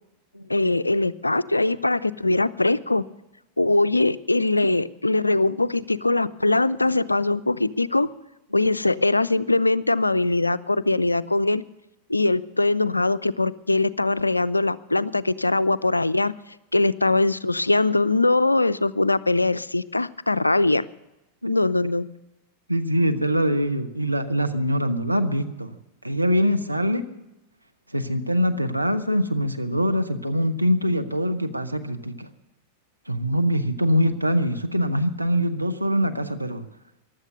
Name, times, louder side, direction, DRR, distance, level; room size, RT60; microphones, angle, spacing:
voice 1, 0.5-3.0 3.6-8.1 8.5-11.6 12.1-16.3 16.7-20.8 21.5-22.1, left 2 dB, 85° left, 17 dB, 0.4 m, -22 dB
voice 2, 22.7-25.8 26.0-27.1 27.9-32.3 33.1-36.7, equal, 85° right, 7 dB, 0.9 m, -23 dB
15.5 x 11.5 x 6.7 m, 0.94 s
figure-of-eight pair, 90°, 0 cm